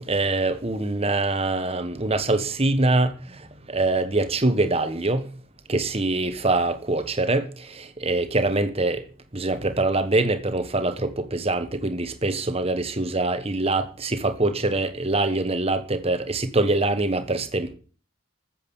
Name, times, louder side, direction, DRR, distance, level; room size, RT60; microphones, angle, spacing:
voice 1, 0.1-3.1 3.7-5.2 5.7-9.0 9.3-17.7, right 2 dB, 30° right, 1.3 m, -24 dB
14.5 x 7.8 x 7.1 m
head